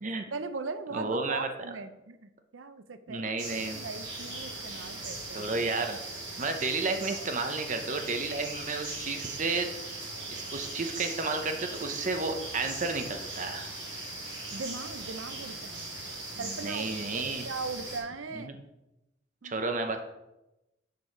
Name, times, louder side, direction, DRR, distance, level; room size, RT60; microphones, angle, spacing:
voice 1, 0.3-5.7 14.5-15.9 16.4-18.5 19.4-19.7, right 4 dB, 80° right, 11 dB, 0.6 m, -39 dB
voice 2, 0.9-1.5 3.1-3.8 5.3-6.0 6.4-9.7 10.3-13.7 16.3-17.4 18.3-18.6 19.4-20.0, right 3 dB, 40° right, 6 dB, 0.7 m, -32 dB
sound 1, 3.4-18.0, right 2 dB, 65° right, 2.8 m, -39 dB
6.7 x 6.3 x 4.9 m, 0.94 s
head